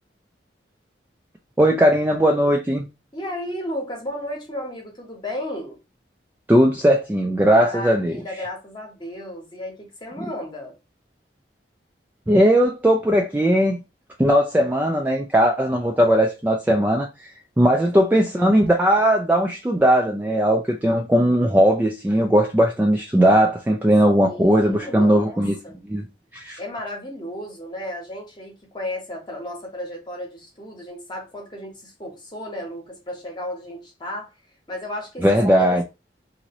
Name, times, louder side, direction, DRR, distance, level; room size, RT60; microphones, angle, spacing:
voice 1, 1.6-2.8 6.5-8.2 12.3-13.8 14.2-17.1 17.6-25.6 25.9-26.0 26.3-26.6 35.2-35.8, equal, 10° right, 0.3 m, -18 dB
voice 2, 3.1-5.8 7.6-10.7 17.8-18.0 24.2-25.8 26.6-34.3 34.7-35.3 35.5-35.8, left 1 dB, 25° left, 1.0 m, -34 dB
2.9 x 2.6 x 2.9 m
head